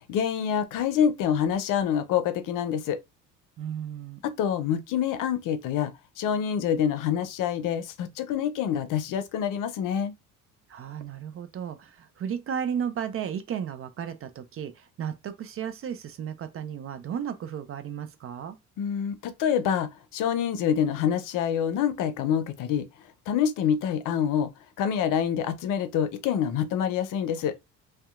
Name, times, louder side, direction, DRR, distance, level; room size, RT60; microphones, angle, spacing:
voice 1, 0.1-3.0 4.2-5.9 6.2-10.1 18.8-22.9 23.3-24.5 24.8-27.6, left 8 dB, 60° left, 0.6 m, -26 dB
voice 2, 3.6-4.2 10.7-18.6, right 8 dB, 40° right, 0.4 m, -34 dB
2.6 x 2.2 x 2.4 m
supercardioid pair, 75°, 37 cm